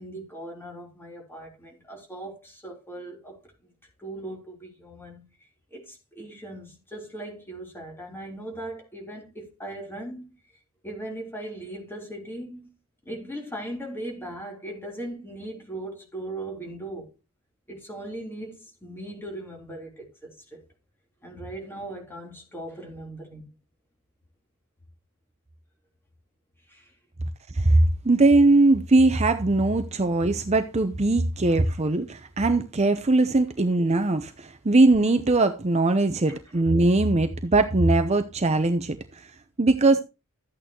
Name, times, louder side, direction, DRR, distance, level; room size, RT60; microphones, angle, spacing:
voice 1, 0.0-3.4 4.0-10.4 10.8-12.7 13.1-17.1 17.7-20.7 21.2-23.5 26.7-27.0 31.4-31.6 36.3-36.4, right 1 dB, 10° left, 3.5 m, -39 dB
voice 2, 27.5-39.2 39.6-40.0, right 2 dB, 30° right, 0.7 m, -21 dB
13.0 x 8.8 x 3.0 m
head